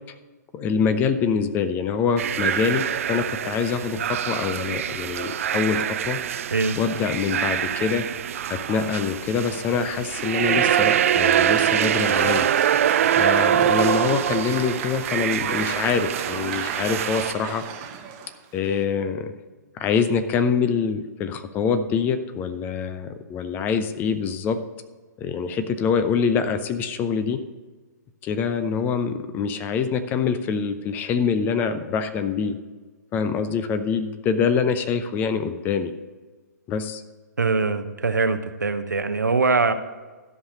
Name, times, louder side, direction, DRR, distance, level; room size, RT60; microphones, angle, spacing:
voice 1, 0.5-6.2 6.8-8.0 8.5-12.5 13.2-17.6 18.5-19.3 19.7-24.6 25.2-27.4 28.2-32.6 33.1-35.9 36.7-37.0, left 6 dB, 20° left, 10 dB, 0.6 m, -25 dB
sound 1, 2.2-17.3, right 9 dB, 45° right, 0.4 m, -24 dB
Applause, 10.7-18.8, right 8 dB, 30° right, 1.0 m, -35 dB
voice 2, 37.4-39.7, right 4 dB, 75° right, 10 dB, 0.9 m, -22 dB
12.5 x 5.7 x 6.5 m, 1.3 s
figure-of-eight pair, 125°, 10 cm